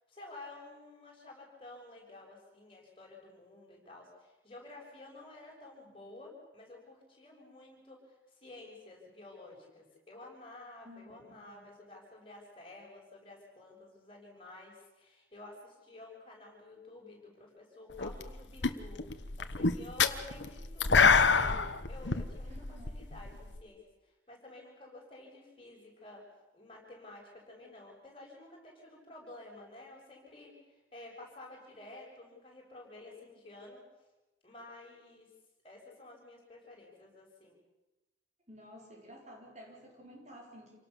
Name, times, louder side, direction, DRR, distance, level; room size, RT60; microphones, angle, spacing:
voice 1, 0.1-19.0 19.4-26.2 26.5-33.8 34.4-35.3 35.6-37.6, left 2 dB, 30° left, -1 dB, 6.7 m, -52 dB
voice 2, 10.8-11.7 22.5-23.0 38.5-40.8, equal, 40° right, 0 dB, 4.6 m, -52 dB
sound 1, 18.0-18.3 18.6-23.6, left 5 dB, 75° left, 1.2 m, -27 dB
28.0 x 18.5 x 7.1 m, 1.1 s
head